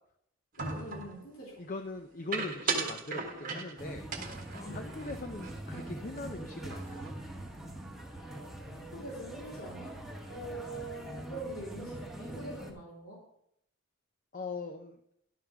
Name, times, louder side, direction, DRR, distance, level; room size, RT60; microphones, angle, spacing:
voice 1, 0.6-1.5 4.6-4.8 8.7-9.9 10.3-13.2, right 2 dB, 85° left, -4 dB, 3.2 m, -43 dB
sound 1, 0.6-1.2 2.3-3.8 4.1-5.8 6.1-6.3 6.6-7.1, right 4 dB, 40° right, 1.2 m, -37 dB
voice 2, 1.6-4.0 4.5-7.0 10.5-10.6 14.3-15.0, left 3 dB, 40° left, 6 dB, 0.6 m, -41 dB
sound 2, 3.8-12.7, right 1 dB, ahead, 1.4 m, -43 dB
11.0 x 5.6 x 5.8 m, 0.73 s
head